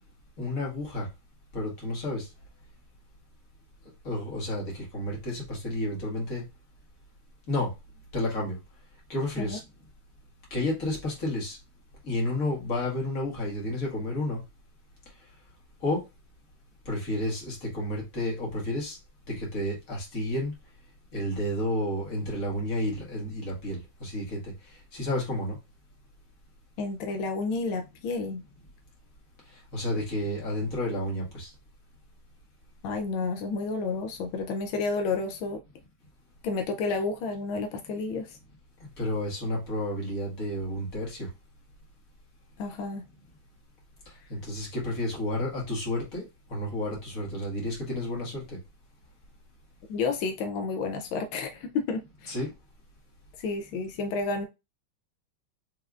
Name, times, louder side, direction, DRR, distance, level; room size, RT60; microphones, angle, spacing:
voice 1, 0.4-1.1 1.5-2.2 4.1-6.4 7.5-7.7 8.1-8.6 9.1-9.6 10.5-11.6 12.0-14.4 15.8-16.0 16.9-19.0 19.3-20.5 21.1-24.4 24.9-25.6 29.7-31.5 39.0-41.3 44.3-46.2 46.5-48.6 52.3-52.5, left 1 dB, 45° left, 2.0 m, -31 dB
voice 2, 26.8-28.4 32.8-35.6 36.4-38.4 42.6-43.0 49.9-52.3 53.4-54.4, left 4 dB, 85° left, 1.5 m, -31 dB
4.9 x 3.3 x 2.4 m
omnidirectional pair, 2.2 m